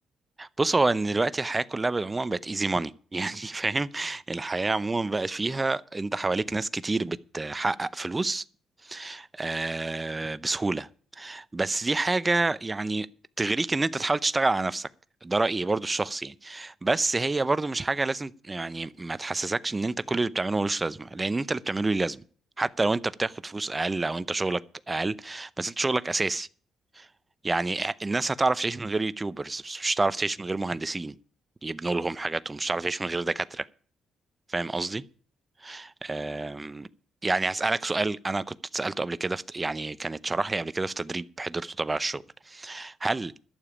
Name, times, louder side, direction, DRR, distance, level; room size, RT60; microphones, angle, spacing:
voice 1, 0.4-8.4 8.8-10.9 11.2-13.1 13.4-14.9 15.2-22.2 22.6-24.6 24.9-26.5 27.0-27.1 27.4-31.2 31.6-33.7 34.5-35.0 35.6-36.9 37.2-43.3, right 3 dB, 20° right, 0.6 m, -28 dB
12.0 x 7.0 x 9.9 m
cardioid pair, 90°, 0 cm